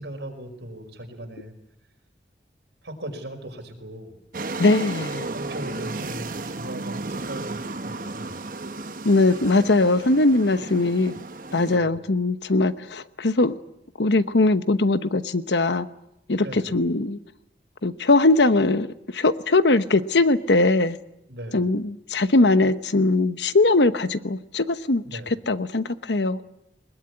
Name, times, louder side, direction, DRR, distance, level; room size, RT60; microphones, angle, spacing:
voice 1, 0.0-1.5 2.8-4.2 5.3-8.5 11.7-12.0 16.4-16.8 21.3-21.7 25.0-25.3, right 1 dB, 85° right, 3 dB, 5.3 m, -38 dB
sound 1, 4.3-11.8, right 3 dB, 50° right, 1.0 m, -34 dB
voice 2, 4.6-5.3 9.0-11.1 11.5-13.6 14.0-15.9 16.3-17.2 17.8-18.9 19.1-21.0 21.5-25.0 25.5-26.4, left 2 dB, 85° left, 12 dB, 1.0 m, -20 dB
21.5 x 21.0 x 9.8 m, 0.85 s
head